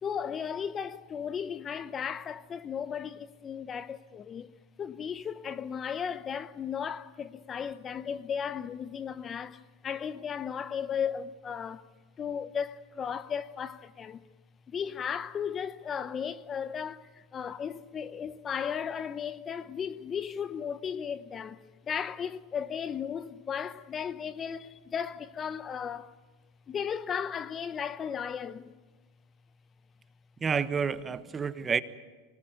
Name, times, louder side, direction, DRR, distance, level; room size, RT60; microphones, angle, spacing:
voice 1, 0.0-4.5 4.8-11.9 12.2-14.2 14.7-26.1 26.7-28.7, left 7 dB, 30° left, 0.8 m, -35 dB
voice 2, 30.4-31.8, right 6 dB, 20° right, 1.2 m, -29 dB
24.5 x 19.0 x 9.3 m
hypercardioid pair, 100°, 0 cm